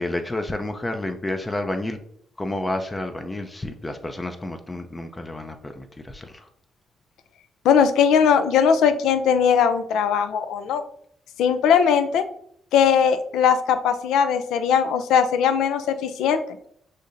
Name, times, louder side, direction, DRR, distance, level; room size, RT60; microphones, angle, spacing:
voice 1, 0.0-2.0 2.4-6.5, left 1 dB, 15° left, 6 dB, 0.4 m, -30 dB
voice 2, 7.6-10.8 11.4-12.2 12.7-16.4, left 7 dB, 85° left, 9 dB, 0.4 m, -19 dB
6.5 x 2.7 x 2.5 m, 0.69 s
cardioid pair, 90°, 0 cm